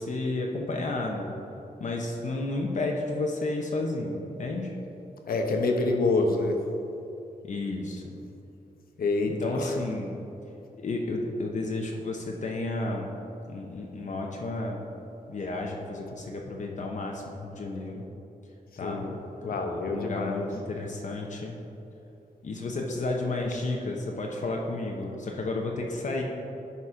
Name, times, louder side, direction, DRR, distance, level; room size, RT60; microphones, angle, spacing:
voice 1, 0.0-1.4 1.8-4.7 7.4-8.2 9.2-10.2 10.8-13.1 13.5-14.8 15.3-18.0 18.8-19.1 19.4-19.5 19.8-21.6 22.4-26.2, left 2 dB, 55° left, 0 dB, 0.9 m, -32 dB
voice 2, 5.3-6.6 9.0-9.8 18.8-19.2 19.4-20.5, left 3 dB, 85° left, 3 dB, 0.9 m, -27 dB
11.5 x 4.2 x 4.9 m, 2.8 s
wide cardioid pair, 130°, 15 cm